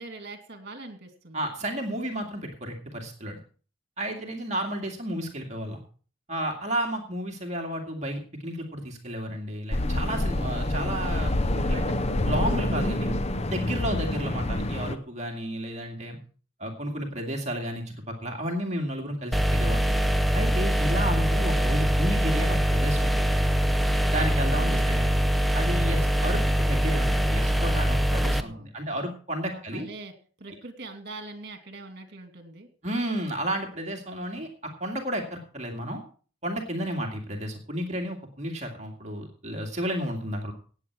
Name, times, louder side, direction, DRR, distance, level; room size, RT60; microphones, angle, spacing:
voice 1, 0.0-1.5 24.3-25.2 28.1-28.7 29.5-30.1 30.4-32.7, right 2 dB, 50° right, 6 dB, 2.6 m, -43 dB
voice 2, 1.3-3.4 4.0-5.8 6.3-11.9 12.2-13.1 13.5-16.2 16.6-19.9 20.3-23.4 24.1-25.1 25.5-29.9 32.8-36.0 36.4-40.5, right 1 dB, 35° right, 2 dB, 2.2 m, -32 dB
sound 1, 9.7-14.9, left 1 dB, 30° left, 0.7 m, -27 dB
sound 2, 19.3-28.4, equal, ahead, 0.6 m, -23 dB
18.0 x 8.0 x 4.7 m, 0.40 s
head